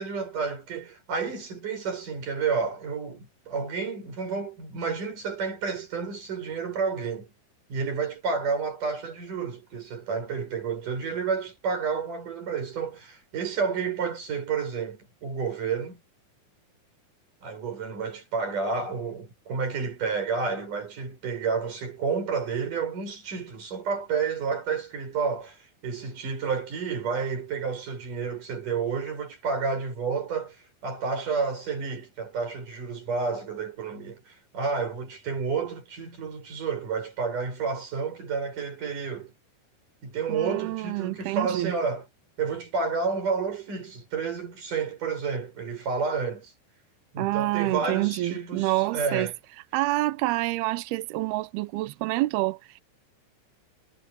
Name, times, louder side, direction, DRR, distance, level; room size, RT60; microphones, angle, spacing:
voice 1, 0.0-7.3 7.7-16.0 17.4-39.3 40.0-42.0 42.4-46.5 47.1-49.3, right 5 dB, 40° right, 7.7 m, -30 dB
voice 2, 40.3-41.7 47.2-49.3 49.7-52.8, right 18 dB, 90° right, 2.2 m, -27 dB
omnidirectional pair, 5.6 m